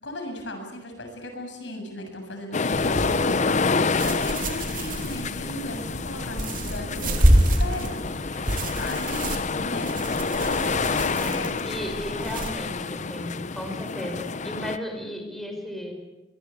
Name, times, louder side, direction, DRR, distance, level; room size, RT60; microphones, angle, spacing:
voice 1, 0.0-11.5, left 1 dB, 70° left, 4 dB, 7.3 m, -37 dB
sound 1, 2.5-14.8, left 4 dB, 40° left, 0.8 m, -28 dB
sound 2, 2.7-12.5, right 1 dB, 45° right, 3.4 m, -27 dB
voice 2, 11.2-15.9, equal, ahead, 2 dB, 5.5 m, -35 dB
24.0 x 23.5 x 8.5 m, 1.1 s
head